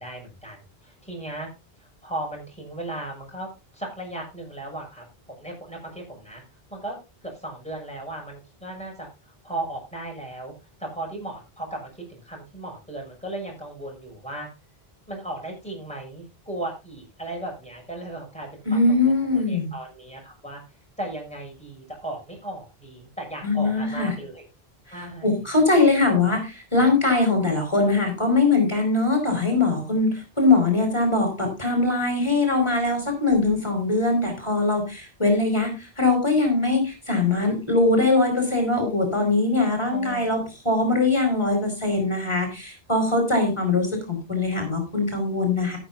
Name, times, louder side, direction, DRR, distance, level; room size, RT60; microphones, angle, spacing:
voice 1, 0.0-1.5 1.8-6.4 6.7-7.0 7.2-10.5 10.8-14.5 15.1-20.6 21.0-24.4 24.9-25.4 39.9-40.3, right 1 dB, 5° left, -1 dB, 6.7 m, -36 dB
voice 2, 18.6-19.7 23.4-24.1 24.9-25.0 25.2-45.8, left 3 dB, 30° left, 2 dB, 4.8 m, -22 dB
14.0 x 12.0 x 2.7 m, 0.28 s
omnidirectional pair, 1.0 m